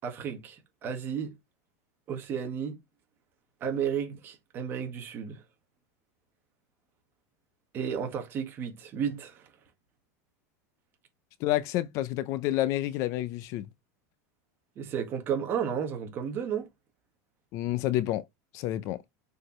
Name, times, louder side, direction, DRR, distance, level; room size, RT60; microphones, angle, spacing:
voice 1, 0.0-1.3 2.1-2.8 3.6-5.4 7.7-9.5 14.8-16.7, right 7 dB, 25° right, 1.7 m, -33 dB
voice 2, 11.4-13.7 17.5-18.2 18.5-19.0, left 14 dB, 35° left, 0.5 m, -29 dB
6.5 x 4.7 x 3.1 m
supercardioid pair, 175°, 9 cm